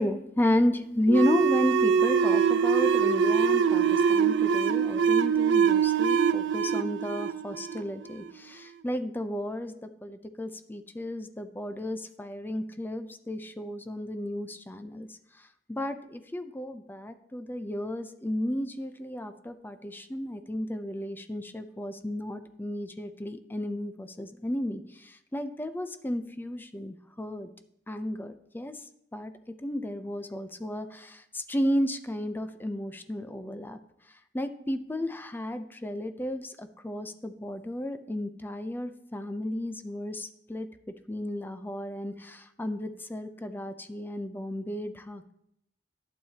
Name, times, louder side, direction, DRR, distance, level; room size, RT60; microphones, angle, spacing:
voice 1, 0.0-15.1 15.7-27.5 27.9-28.7 29.1-29.3 29.6-33.8 34.3-40.7 41.1-45.3, left 1 dB, 10° left, 9 dB, 0.4 m, -33 dB
sound 1, 1.1-8.3, right 6 dB, 90° right, 0.4 m, -23 dB
11.5 x 7.4 x 2.8 m, 0.76 s
head